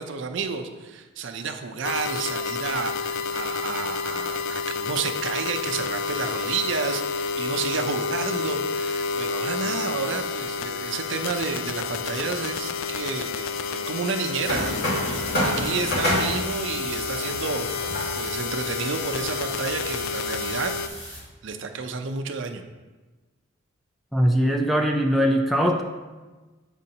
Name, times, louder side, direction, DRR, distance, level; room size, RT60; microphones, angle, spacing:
voice 1, 0.0-20.7 21.4-22.6, right 5 dB, 65° right, 6 dB, 0.5 m, -31 dB
sound 1, 1.8-20.9, left 5 dB, 75° left, 0.3 m, -30 dB
sound 2, 14.4-21.2, left 1 dB, 50° left, 2.2 m, -30 dB
voice 2, 24.1-25.8, equal, ahead, 2 dB, 0.3 m, -21 dB
7.9 x 5.2 x 2.8 m, 1.2 s
head